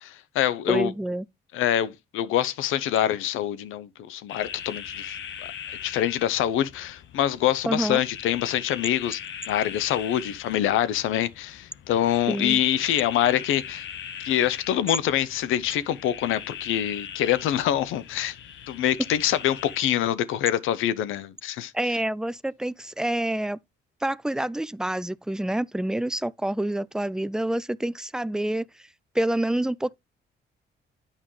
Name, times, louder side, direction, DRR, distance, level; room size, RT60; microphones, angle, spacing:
voice 1, 0.0-0.9 1.5-5.2 5.7-9.2 9.5-13.9 14.2-18.4 18.7-21.7, left 11 dB, 90° left, 0.8 m, -25 dB
voice 2, 0.7-1.3 7.7-8.0 12.3-12.6 21.7-23.6 24.0-28.6 29.2-30.0, right 1 dB, 5° right, 0.3 m, -27 dB
sound 1, 4.3-19.8, left 9 dB, 70° left, 1.2 m, -40 dB
9.0 x 5.4 x 3.1 m
cardioid pair, 90°, 20 cm